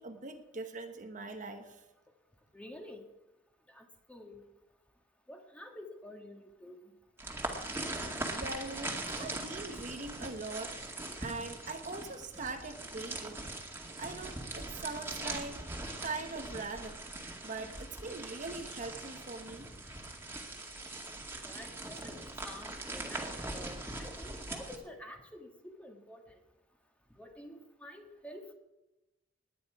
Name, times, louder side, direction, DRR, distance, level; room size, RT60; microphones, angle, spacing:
voice 1, 0.0-1.8 8.3-10.8 11.2-13.4 14.0-15.6 16.0-17.0 17.4-19.7, right 3 dB, 45° right, 5 dB, 1.2 m, -41 dB
voice 2, 2.5-3.0 3.7-4.4 5.3-6.8 21.4-26.2 27.2-28.5, left 1 dB, 5° left, 3 dB, 1.9 m, -49 dB
sound 1, 7.2-24.8, right 2 dB, 15° right, 2.1 m, -41 dB
19.5 x 9.9 x 4.8 m, 1.0 s
head